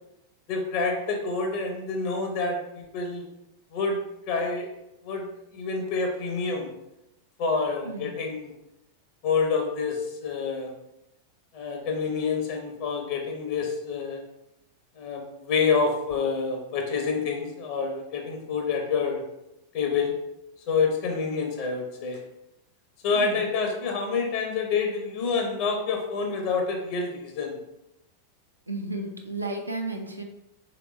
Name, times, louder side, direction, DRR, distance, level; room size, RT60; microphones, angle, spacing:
voice 1, 0.5-3.2 3.7-4.7 5.0-6.7 7.4-8.5 9.2-10.7 11.5-14.2 15.0-19.2 19.7-20.1 20.7-22.2 23.0-27.6, left 4 dB, 45° left, 2 dB, 0.7 m, -27 dB
voice 2, 7.8-8.3 23.1-23.4 28.7-30.2, right 2 dB, 80° right, 3 dB, 0.5 m, -33 dB
3.3 x 2.9 x 3.1 m, 0.88 s
figure-of-eight pair, 90°, 0 cm